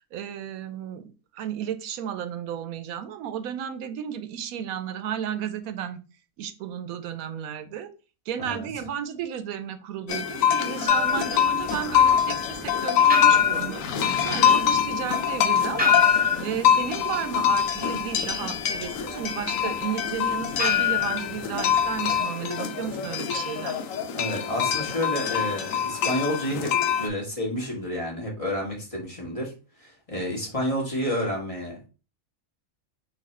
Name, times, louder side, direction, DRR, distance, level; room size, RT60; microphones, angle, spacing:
voice 1, 0.0-6.0 6.4-7.9 8.3-16.0 16.4-23.8, right 9 dB, 85° right, 10 dB, 1.0 m, -33 dB
voice 2, 8.4-8.7 14.3-14.5 24.1-26.7 27.0-29.5 29.8-31.9, equal, 25° left, -3 dB, 1.4 m, -30 dB
sound 1, 10.1-27.1, left 8 dB, 75° left, 1.0 m, -25 dB
sound 2, 10.9-22.2, left 7 dB, 10° right, 0.5 m, -27 dB
4.1 x 2.7 x 4.1 m, 0.33 s
omnidirectional pair, 1.5 m